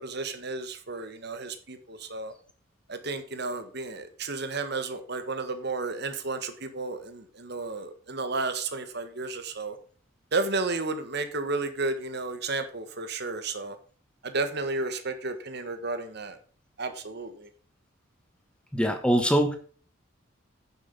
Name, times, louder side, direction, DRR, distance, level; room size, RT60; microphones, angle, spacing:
voice 1, 0.0-2.3 2.9-9.8 10.3-13.7 14.2-16.4 16.8-17.5, right 3 dB, 55° right, 1.5 m, -32 dB
voice 2, 18.7-19.6, equal, 5° left, 1.1 m, -23 dB
10.5 x 7.2 x 5.3 m
head